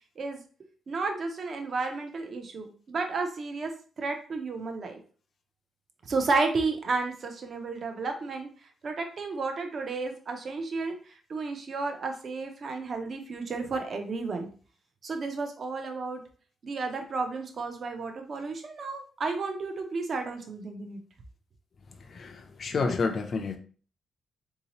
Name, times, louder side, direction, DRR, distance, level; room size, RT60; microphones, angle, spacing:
voice 1, 0.9-3.7 4.0-5.0 6.1-8.5 8.8-10.9 11.3-14.5 15.0-16.2 16.6-21.0, right 3 dB, 40° right, 5 dB, 0.5 m, -32 dB
voice 2, 22.0-23.6, left 4 dB, 40° left, 4 dB, 0.4 m, -30 dB
3.7 x 2.7 x 2.9 m, 0.41 s
wide cardioid pair, 165°, 0 cm